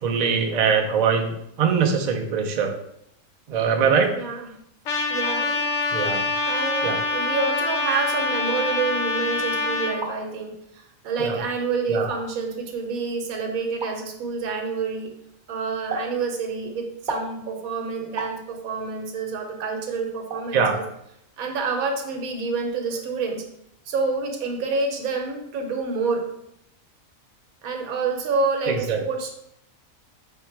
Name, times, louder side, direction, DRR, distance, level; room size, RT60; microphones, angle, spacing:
voice 1, 0.0-2.7 3.5-4.1 5.9-6.2 6.8-7.0 11.2-11.4 11.9-12.1 20.5-20.7 28.7-29.0, right 6 dB, 70° right, 3 dB, 0.4 m, -22 dB
voice 2, 4.1-4.6 5.1-5.7 6.4-15.1 15.5-20.8 21.4-23.4 23.9-26.3 27.6-29.3, right 4 dB, 85° right, 4 dB, 1.2 m, -28 dB
Trumpet, 4.9-10.0, left 3 dB, 70° left, 0.9 m, -25 dB
sound 1, 9.7-10.2 11.1-11.2 12.0-12.2 13.8-13.9 15.9-16.1 17.1-17.3 18.2-18.4 19.6-19.7 20.3-20.5 20.7-20.9, right 2 dB, 40° right, 0.8 m, -31 dB
4.4 x 2.2 x 4.4 m, 0.77 s
omnidirectional pair, 1.4 m